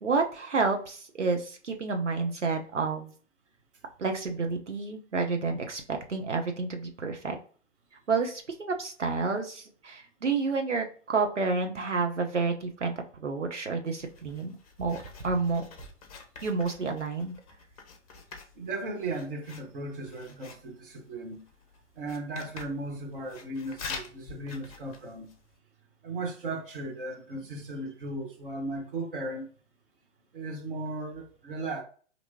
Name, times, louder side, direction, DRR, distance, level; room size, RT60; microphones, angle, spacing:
voice 1, 0.0-3.1 4.0-7.4 8.1-14.5 14.8-15.0 15.2-15.6 16.4-17.4, right 4 dB, 80° right, 0.8 m, -29 dB
Writing, 13.9-25.6, left 4 dB, 30° left, 0.6 m, -47 dB
voice 2, 18.6-21.4 22.0-25.3 26.0-29.5 30.3-31.8, right 2 dB, 50° right, 1.0 m, -36 dB
4.4 x 2.9 x 2.7 m
figure-of-eight pair, 120°, 36 cm